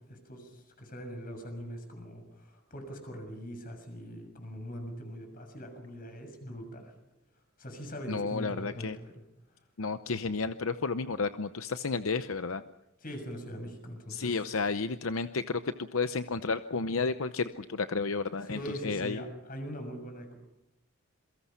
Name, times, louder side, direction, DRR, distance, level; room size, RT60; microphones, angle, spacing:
voice 1, 0.1-6.9 7.6-9.1 13.0-14.4 18.4-20.4, equal, 40° left, 5 dB, 6.7 m, -42 dB
voice 2, 8.1-9.0 9.8-12.6 14.1-19.2, left 4 dB, 75° left, 11 dB, 0.8 m, -32 dB
27.5 x 23.0 x 5.8 m, 0.91 s
head